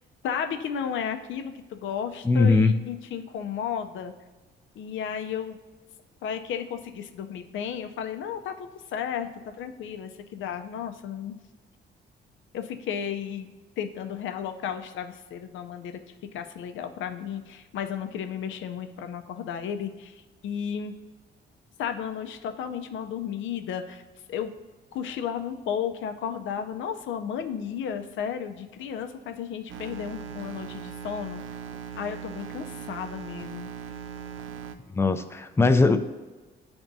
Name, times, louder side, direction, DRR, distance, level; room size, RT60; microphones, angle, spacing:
voice 1, 0.2-4.1 4.8-5.6 6.2-9.3 9.6-11.4 12.5-13.5 13.8-16.0 16.3-20.1 20.4-20.9 21.8-24.0 24.3-24.5 24.9-31.4 31.9-33.7, left 8 dB, 75° left, 7 dB, 0.5 m, -33 dB
voice 2, 2.2-2.8 34.9-36.0, left 3 dB, 10° left, 7 dB, 0.4 m, -20 dB
sound 1, 29.7-34.8, right 7 dB, 85° right, 0.5 m, -39 dB
10.0 x 3.5 x 2.7 m, 1.3 s
cardioid pair, 90°, 20 cm